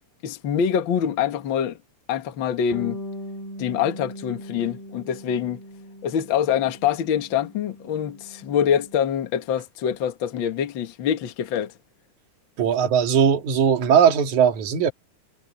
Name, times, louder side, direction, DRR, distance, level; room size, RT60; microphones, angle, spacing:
voice 1, 0.2-1.8 2.1-3.0 3.6-5.6 6.0-11.7, left 8 dB, 50° left, 1.6 m, -25 dB
Bass guitar, 2.7-9.0, equal, 65° left, 5.3 m, -40 dB
voice 2, 12.6-14.9, right 8 dB, 60° right, 3.5 m, -19 dB
omnidirectional pair, 3.9 m